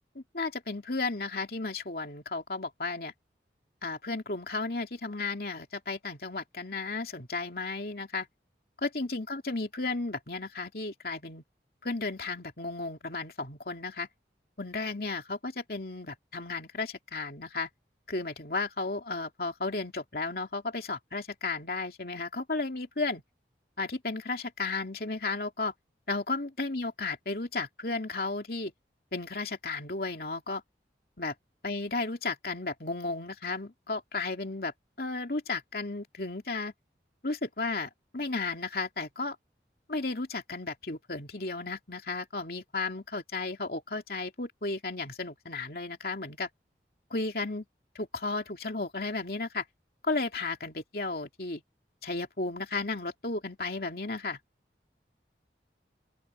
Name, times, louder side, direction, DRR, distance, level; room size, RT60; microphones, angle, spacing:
voice 1, 0.1-3.1 3.8-8.3 8.8-11.4 11.8-14.1 14.6-17.7 18.1-23.2 23.8-25.7 26.1-28.7 29.1-30.6 31.2-31.3 31.6-34.7 35.0-36.7 37.2-39.4 39.9-46.5 47.1-47.6 47.9-49.6 50.0-51.6 52.0-54.4, left 3 dB, 55° left, 2.8 m, -34 dB
open air
head